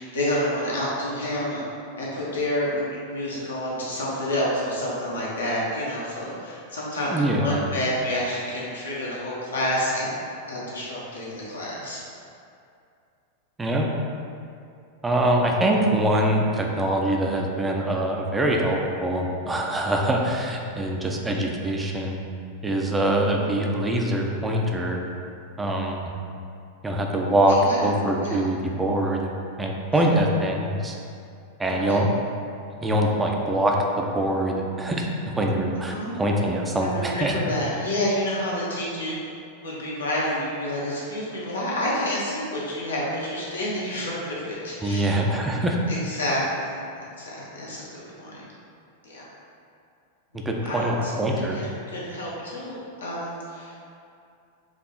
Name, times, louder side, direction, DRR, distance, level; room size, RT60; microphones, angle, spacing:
voice 1, 0.0-1.6 2.0-10.1 10.5-12.0 27.2-27.9 28.2-28.5 29.9-30.0 31.6-32.0 35.9-36.2 36.8-39.2 39.6-45.1 45.9-46.8 47.2-47.8 48.2-48.4 49.0-49.3 50.6-53.8, left 1 dB, 70° left, -6 dB, 1.1 m, -29 dB
voice 2, 7.1-7.6 13.6-13.9 15.0-22.2 22.6-25.0 25.6-26.1 26.8-29.3 29.6-31.0 31.6-32.1 32.8-37.5 44.8-45.8 50.5-51.6, right 1 dB, 10° right, 0 dB, 0.5 m, -24 dB
4.8 x 2.8 x 3.8 m, 2.5 s
figure-of-eight pair, 90°, 0 cm